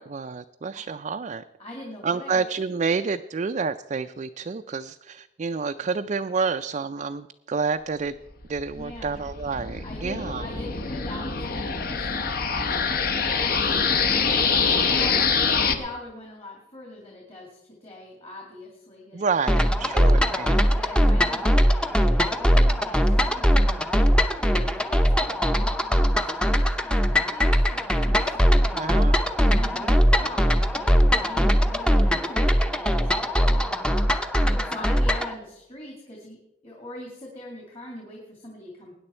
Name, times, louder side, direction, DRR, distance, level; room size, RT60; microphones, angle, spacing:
voice 1, 0.0-1.4 2.0-8.1 8.5-10.4 15.0-15.1 19.1-20.7 28.7-29.3 29.8-29.9, right 5 dB, 40° right, 7 dB, 0.4 m, -29 dB
voice 2, 1.6-2.5 8.7-9.2 9.8-14.3 14.8-20.3 20.7-23.9 24.4-28.7 29.4-36.4 36.6-38.9, left 1 dB, 35° left, -1 dB, 2.5 m, -42 dB
sound 1, 8.4-15.7, left 5 dB, 55° left, 1.1 m, -25 dB
sound 2, 19.5-35.3, equal, 5° left, 0.7 m, -21 dB
20.0 x 9.7 x 4.4 m, 0.91 s
head